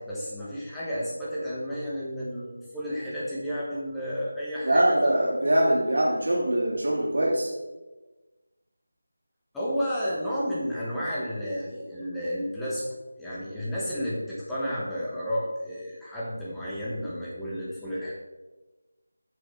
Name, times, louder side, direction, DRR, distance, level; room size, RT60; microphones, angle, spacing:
voice 1, 0.0-5.3 9.5-12.9 13.2-18.1, equal, 5° left, -9 dB, 1.3 m, -32 dB
voice 2, 4.6-7.5, right 1 dB, 70° right, -4 dB, 2.8 m, -23 dB
9.5 x 6.8 x 3.8 m, 1.2 s
figure-of-eight pair, 175°, 0 cm